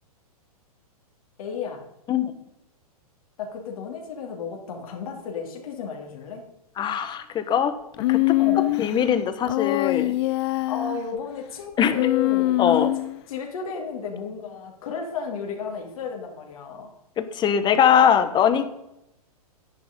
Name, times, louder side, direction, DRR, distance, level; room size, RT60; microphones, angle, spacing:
voice 1, 1.4-1.8 3.4-6.4 8.4-8.8 10.7-12.9 13.3-16.9, left 5 dB, 65° left, 1 dB, 2.8 m, -33 dB
voice 2, 6.8-7.7 8.1-8.4 8.8-10.2 11.8-12.1 12.6-12.9 17.2-18.6, left 8 dB, 25° left, 11 dB, 1.2 m, -21 dB
Human voice, 8.0-8.9 9.5-11.0 11.9-13.2, left 20 dB, 45° left, 0.4 m, -23 dB
10.5 x 9.4 x 5.3 m, 0.83 s
hypercardioid pair, 120°, 19 cm